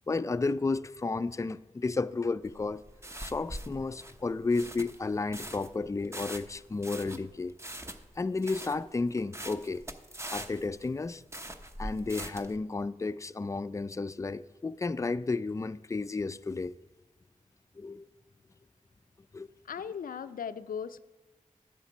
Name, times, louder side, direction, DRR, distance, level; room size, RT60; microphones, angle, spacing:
voice 1, 0.1-2.8 3.2-7.5 8.2-9.8 10.3-11.2 11.8-16.8 17.8-18.1 19.3-19.5, left 3 dB, 20° left, 0.4 m, -32 dB
sound 1, 2.4-12.6, right 1 dB, 20° right, 0.8 m, -42 dB
voice 2, 19.6-21.0, left 7 dB, 85° left, 0.4 m, -37 dB
10.0 x 7.5 x 6.0 m
cardioid pair, 45°, 14 cm